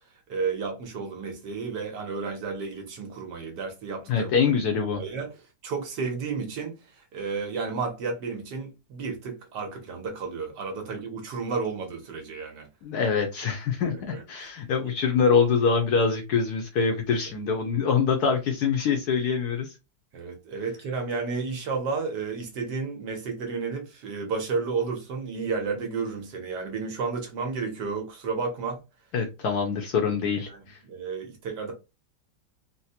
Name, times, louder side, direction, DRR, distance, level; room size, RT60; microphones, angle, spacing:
voice 1, 0.3-4.3 4.9-5.3 5.6-6.8 7.1-12.7 14.1-14.5 20.1-28.8 30.5-31.7, right 4 dB, 65° right, 1.4 m, -32 dB
voice 2, 4.1-5.0 12.8-19.7 29.1-30.8, left 5 dB, 70° left, 1.0 m, -24 dB
4.0 x 2.1 x 2.7 m
omnidirectional pair, 2.1 m